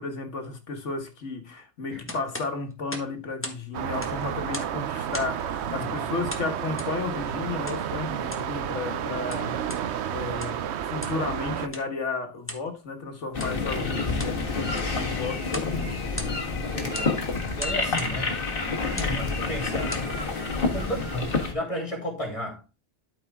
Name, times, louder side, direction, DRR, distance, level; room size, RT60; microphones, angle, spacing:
voice 1, 0.0-9.5 10.1-10.6 10.8-14.5 14.9-16.8, left 3 dB, 85° left, 1.8 m, -33 dB
sound 1, 2.1-3.6 3.9-4.8 5.1-5.5 6.3-6.9 7.7-7.8 8.2-8.5 9.1-9.8 10.3-10.6 11.0-11.2 11.7-11.9 12.4-12.7 13.3-13.6 14.0-14.4 14.7-15.0 15.5-15.7 16.0-16.6 16.9-17.1 17.6-18.1 18.8-19.2 19.7-20.1, left 1 dB, 10° left, 1.3 m, -38 dB
sound 2, 3.7-11.7, right 9 dB, 70° right, 0.9 m, -31 dB
voice 2, 5.7-6.1 13.8-14.5 16.7-17.3 17.6-18.4 18.9-20.0 20.7-22.6, equal, 30° left, 3.4 m, -34 dB
sound 3, 13.3-21.5, left 3 dB, 50° left, 1.7 m, -28 dB
12.0 x 4.8 x 3.5 m
omnidirectional pair, 1.2 m